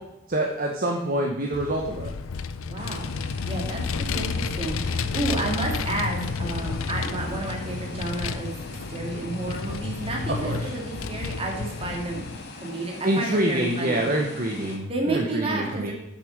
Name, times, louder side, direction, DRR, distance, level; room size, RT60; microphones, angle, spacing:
voice 1, 0.3-2.1 10.4-10.6 13.0-15.9, right 1 dB, 45° right, 1 dB, 1.1 m, -26 dB
Vehicle, 1.5-12.4, left 4 dB, 85° left, 0.5 m, -31 dB
voice 2, 2.7-3.1 3.5-8.5 8.9-12.2 12.5-14.1 14.9-15.9, right 2 dB, 30° right, -1 dB, 2.5 m, -31 dB
sound 1, 2.8-14.8, left 1 dB, 55° left, 1.6 m, -41 dB
8.5 x 6.8 x 6.5 m, 0.89 s
head